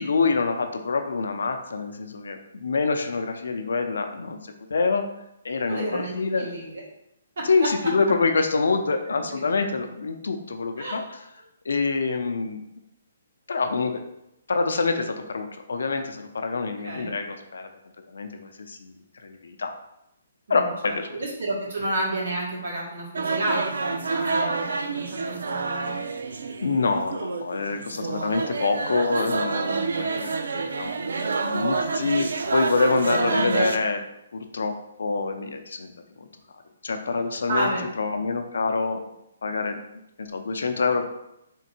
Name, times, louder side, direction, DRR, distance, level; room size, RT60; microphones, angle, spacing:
voice 1, 0.0-5.0 5.4-6.5 7.4-11.2 11.7-12.6 13.5-14.0 14.5-17.7 18.1-18.9 19.2-19.7 20.5-21.2 26.6-34.0 34.3-35.9 36.2-36.3 36.8-37.7 38.0-39.0 39.4-39.8 40.2-41.0, left 4 dB, 80° left, 6 dB, 0.5 m, -26 dB
voice 2, 5.7-6.8 7.4-7.5 10.8-11.0 16.6-17.2 20.5-26.0 28.1-28.2 33.3-33.6 37.5-37.8, right 1 dB, 55° right, -4 dB, 1.4 m, -31 dB
sound 1, 23.2-33.8, right 4 dB, 80° right, 0.4 m, -28 dB
3.7 x 2.6 x 4.3 m, 0.84 s
hypercardioid pair, 180°, 0 cm